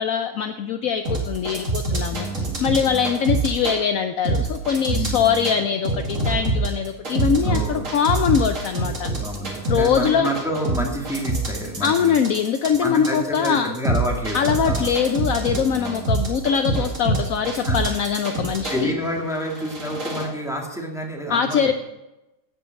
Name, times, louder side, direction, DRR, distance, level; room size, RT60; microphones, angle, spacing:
voice 1, 0.0-9.1 9.7-10.3 11.8-13.7 14.3-18.9 21.3-21.7, left 7 dB, 65° left, 8 dB, 0.9 m, -22 dB
sound 1, 1.0-3.8 4.2-5.6 5.8-18.8 19.4-20.2, right 2 dB, 50° right, 2.5 m, -25 dB
voice 2, 2.1-3.1 4.9-5.6 7.4-8.0 9.2-12.2 12.8-15.0 15.7-16.1 17.5-17.8 18.1-18.2 18.7-21.7, equal, ahead, 0 dB, 1.8 m, -29 dB
15.5 x 5.5 x 6.4 m, 0.97 s
omnidirectional pair, 1.7 m